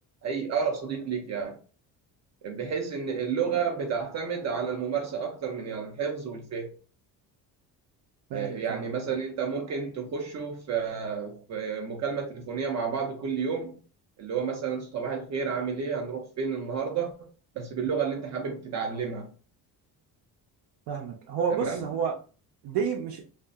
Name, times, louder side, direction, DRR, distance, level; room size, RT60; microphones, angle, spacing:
voice 1, 0.2-1.6 2.4-6.7 8.3-13.8 14.2-17.3 17.6-19.3 21.5-21.9, right 6 dB, 45° right, 0.5 m, -31 dB
voice 2, 8.3-8.9 20.9-22.1 22.6-23.3, right 6 dB, 80° right, 0.6 m, -30 dB
2.7 x 2.5 x 2.3 m
cardioid pair, 145°, 40 cm